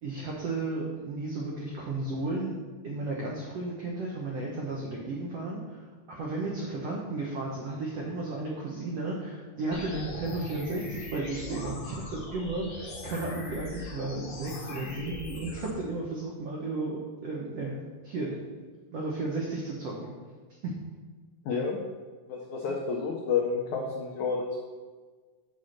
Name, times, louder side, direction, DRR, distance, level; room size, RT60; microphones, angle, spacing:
voice 1, 0.0-2.6 2.8-18.4 18.9-20.1 20.6-20.7, right 2 dB, 85° right, -3 dB, 1.4 m, -34 dB
sound 1, 9.7-15.7, left 2 dB, 65° left, 1.3 m, -40 dB
voice 2, 21.4-21.8 22.3-24.6, left 5 dB, 85° left, -1 dB, 1.6 m, -30 dB
8.1 x 4.4 x 6.5 m, 1.4 s
omnidirectional pair, 4.4 m